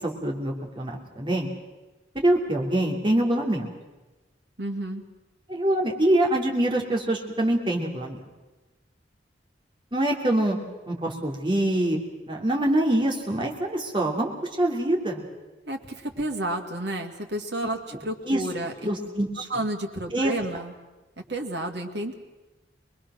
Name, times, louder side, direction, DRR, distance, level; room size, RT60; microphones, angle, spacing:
voice 1, 0.0-1.5 2.2-3.7 5.5-8.2 9.9-10.6 10.9-12.0 12.3-14.3 14.6-15.2 18.2-18.4 18.8-19.5 20.1-20.3, right 1 dB, 30° right, 0 dB, 2.8 m, -24 dB
voice 2, 4.6-5.0 15.7-18.7 19.5-20.7 21.3-22.1, right 1 dB, 70° right, 3 dB, 2.3 m, -31 dB
24.5 x 21.0 x 6.3 m, 1.1 s
head